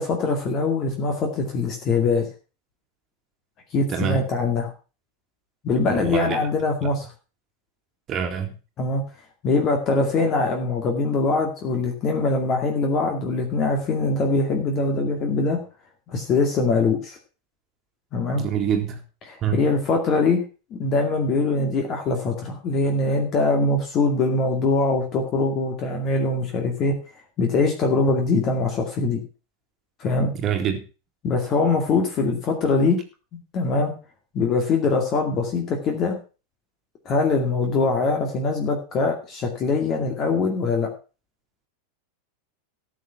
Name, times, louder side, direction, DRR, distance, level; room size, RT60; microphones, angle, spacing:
voice 1, 0.0-2.3 3.7-4.7 5.6-7.0 8.8-9.0 9.4-15.6 16.1-17.2 18.1-18.4 19.3-20.4 20.7-26.9 27.4-29.2 30.0-30.3 31.2-33.0 33.5-33.9 34.3-36.2 37.1-40.9, left 3 dB, 35° left, 2.2 m, -22 dB
voice 2, 3.9-4.2 5.9-6.4 8.1-8.5 18.4-19.0 19.4-19.7 30.4-30.8, right 8 dB, 35° right, 2.0 m, -25 dB
14.0 x 6.6 x 5.7 m
figure-of-eight pair, 90°, 0 cm